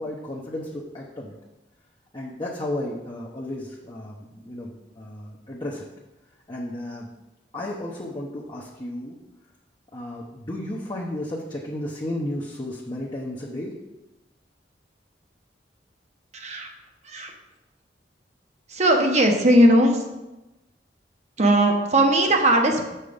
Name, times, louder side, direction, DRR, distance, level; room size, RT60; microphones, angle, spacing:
voice 1, 0.0-1.3 2.1-5.8 6.5-7.1 7.5-9.2 9.9-13.8, left 1 dB, 25° left, -3 dB, 0.8 m, -33 dB
voice 2, 16.3-16.7 17.0-17.3 18.7-20.0 21.4-22.9, right 1 dB, 40° right, 3 dB, 1.0 m, -18 dB
7.3 x 5.6 x 5.1 m, 1.0 s
head